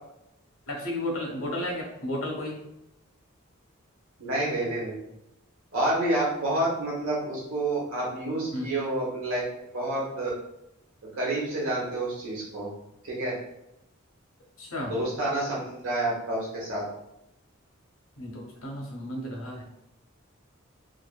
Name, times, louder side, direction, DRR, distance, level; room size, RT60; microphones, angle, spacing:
voice 1, 0.7-2.6 8.5-8.7 14.6-14.9 18.2-19.6, left 1 dB, 90° left, 0 dB, 0.8 m, -33 dB
voice 2, 4.2-5.0 5.7-10.3 11.2-12.7 13.0-13.4 14.8-16.8, right 1 dB, 90° right, -4 dB, 1.1 m, -29 dB
2.7 x 2.5 x 2.3 m, 0.85 s
head